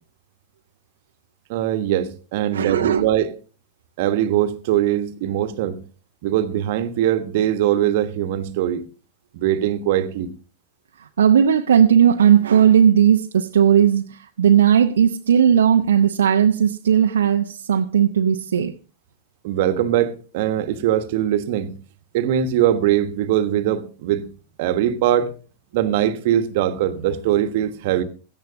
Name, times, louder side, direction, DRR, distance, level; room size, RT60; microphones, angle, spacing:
voice 1, 1.5-3.3 4.0-5.8 6.2-8.8 9.3-10.3 19.4-21.7 22.1-24.3 24.6-25.3 25.7-28.0, right 11 dB, 50° right, 1.3 m, -21 dB
voice 2, 2.5-3.1 11.2-18.7, right 8 dB, 65° right, 0.8 m, -16 dB
17.0 x 14.5 x 2.7 m
figure-of-eight pair, 90°, 0 cm